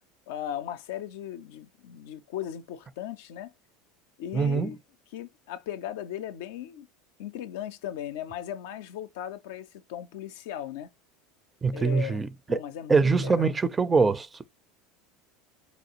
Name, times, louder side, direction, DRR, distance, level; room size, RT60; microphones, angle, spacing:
voice 1, 0.3-3.5 4.2-4.8 5.1-6.9 7.2-10.9 11.7-13.5, left 11 dB, 70° left, 0.4 m, -37 dB
voice 2, 4.3-4.7 11.6-12.6 12.9-14.5, right 4 dB, 20° right, 0.4 m, -24 dB
4.1 x 2.3 x 2.7 m
hypercardioid pair, 80°, 0 cm